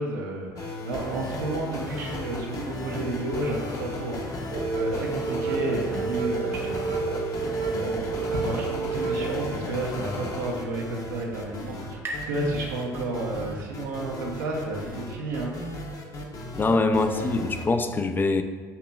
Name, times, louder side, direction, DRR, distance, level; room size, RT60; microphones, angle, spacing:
voice 1, 0.0-4.2 4.8-7.0 7.7-15.5 16.9-17.2, right 2 dB, 85° right, -2 dB, 0.9 m, -32 dB
sound 1, 0.6-17.7, left 2 dB, 35° left, 0.8 m, -35 dB
sound 2, 4.5-9.5, right 5 dB, 60° right, 0.5 m, -30 dB
sound 3, 10.6-14.0, right 1 dB, 25° right, 0.9 m, -42 dB
voice 2, 16.6-18.4, left 3 dB, 20° left, 8 dB, 0.4 m, -23 dB
6.9 x 2.9 x 2.3 m, 1.5 s
hypercardioid pair, 70°, 10 cm